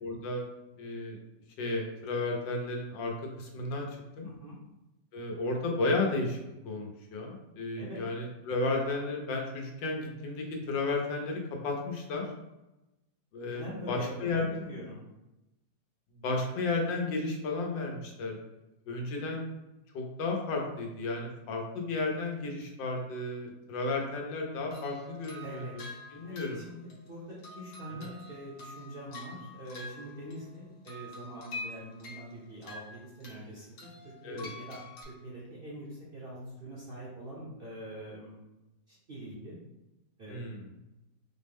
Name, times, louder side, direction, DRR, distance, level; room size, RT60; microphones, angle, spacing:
voice 1, 0.0-0.5 0.8-1.2 1.6-4.3 5.1-6.4 6.6-12.3 13.3-14.4 16.2-18.4 18.9-19.4 19.9-26.6 28.0-28.1 34.2-34.5 40.3-40.7, left 3 dB, 80° left, 1 dB, 1.4 m, -33 dB
voice 2, 4.2-4.6 7.8-8.0 13.5-15.0 25.4-26.0 26.2-26.8 27.1-38.4 38.9-39.6 40.2-40.5, right 1 dB, 45° right, -7 dB, 0.7 m, -44 dB
sound 1, 24.7-30.6 30.8-33.4 33.8-35.0, left 2 dB, 60° left, 1.4 m, -46 dB
4.5 x 2.1 x 3.5 m, 0.97 s
omnidirectional pair, 2.0 m